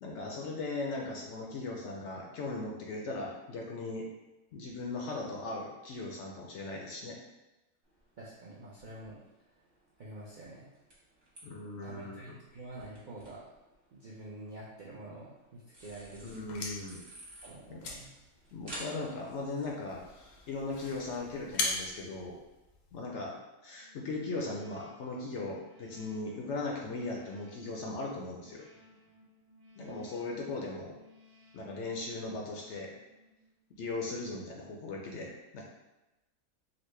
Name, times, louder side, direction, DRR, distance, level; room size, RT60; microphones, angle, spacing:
voice 1, 0.0-4.1 4.5-7.2 11.4-12.4 16.2-17.0 17.7-17.8 18.5-20.0 20.5-22.4 22.9-23.4 23.6-28.6 29.8-31.0 31.5-32.9 33.7-35.7, left 3 dB, 65° left, -1 dB, 0.7 m, -38 dB
sound 1, 7.8-21.9, right 1 dB, 45° right, 1.2 m, -54 dB
voice 2, 8.2-9.2 10.0-10.7 11.8-13.4 13.9-16.3 17.4-18.1, right 2 dB, 60° right, -7 dB, 0.5 m, -47 dB
sound 2, 16.2-23.1, left 3 dB, 85° left, 1.1 m, -41 dB
sound 3, 23.7-33.7, left 1 dB, 80° right, 1.3 m, -61 dB
4.0 x 2.1 x 3.1 m, 1.0 s
omnidirectional pair, 1.5 m